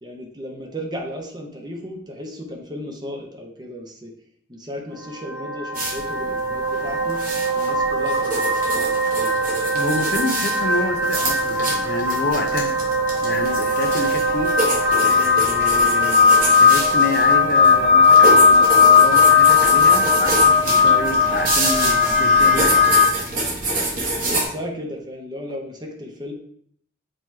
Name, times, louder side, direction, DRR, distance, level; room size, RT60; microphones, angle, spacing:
voice 1, 0.0-4.1 4.5-7.2 7.5-9.4 24.2-26.3, equal, 20° right, 0.9 m, -35 dB
sound 1, 4.9-23.1, left 4 dB, 75° right, 1.8 m, -18 dB
sound 2, 5.7-24.4, right 2 dB, 45° right, 1.6 m, -27 dB
voice 2, 9.7-12.8 13.2-22.9 23.5-23.6, left 2 dB, 50° left, 0.6 m, -28 dB
7.7 x 3.0 x 4.5 m
head